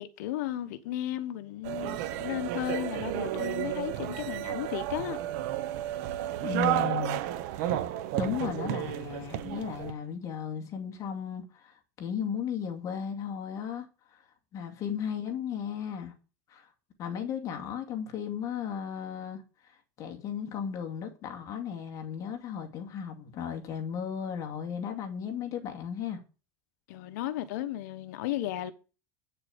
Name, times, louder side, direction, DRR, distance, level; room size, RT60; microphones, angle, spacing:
voice 1, 0.0-5.2 26.9-28.7, left 13 dB, 75° left, 1.0 m, -34 dB
sound 1, 1.6-9.9, right 12 dB, 65° right, 1.1 m, -32 dB
voice 2, 6.4-7.2 7.5-7.8 8.1-14.2 14.5-16.1 16.5-16.7 17.0-19.4 20.0-26.2, left 8 dB, 35° left, 2.3 m, -35 dB
8.7 x 6.7 x 5.0 m
supercardioid pair, 145°, 9 cm